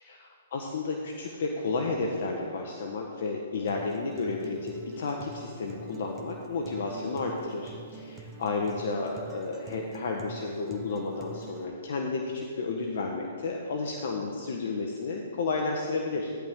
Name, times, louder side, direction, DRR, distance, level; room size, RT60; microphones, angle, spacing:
voice 1, 0.0-16.3, left 3 dB, 65° left, 1 dB, 1.3 m, -32 dB
Acoustic guitar, 3.7-11.6, right 3 dB, 15° right, 1.2 m, -45 dB
15.0 x 10.5 x 3.8 m, 2.2 s
hypercardioid pair, 135°, 0 cm